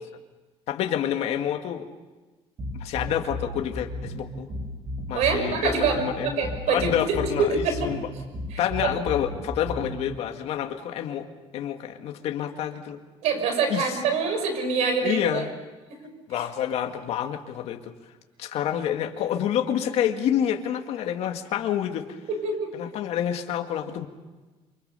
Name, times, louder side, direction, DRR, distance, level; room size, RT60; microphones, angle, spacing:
voice 1, 0.7-1.8 2.7-4.5 5.1-8.0 8.6-11.3 11.5-13.0 13.7-14.0 15.0-15.5 16.3-17.9 18.4-22.2 22.7-24.1, left 10 dB, 65° left, 4 dB, 1.9 m, -28 dB
sound 1, 2.6-10.2, left 1 dB, 35° right, 7.7 m, -34 dB
voice 2, 5.1-6.0 6.2-7.9 8.5-8.9 13.2-15.5 22.3-22.7, right 5 dB, 80° right, 6 dB, 6.1 m, -25 dB
28.5 x 25.0 x 6.9 m, 1.2 s
cardioid pair, 165°, 11 cm